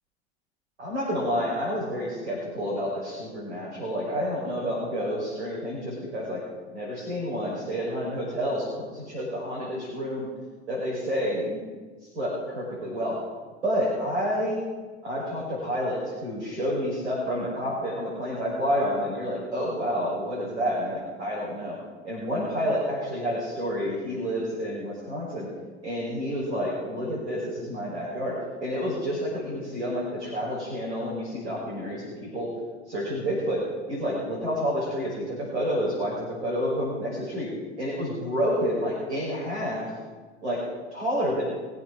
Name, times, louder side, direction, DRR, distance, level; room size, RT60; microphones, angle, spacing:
voice 1, 0.8-6.4 6.7-10.3 10.7-11.6 12.1-13.1 13.6-14.6 15.0-21.8 22.0-25.5 25.8-28.3 28.6-32.5 32.9-33.6 33.9-37.5 37.8-39.9 40.4-40.6 40.9-41.4, equal, 75° right, -7 dB, 5.7 m, -29 dB
22.0 x 8.1 x 6.3 m, 1.4 s
figure-of-eight pair, 70°, 34 cm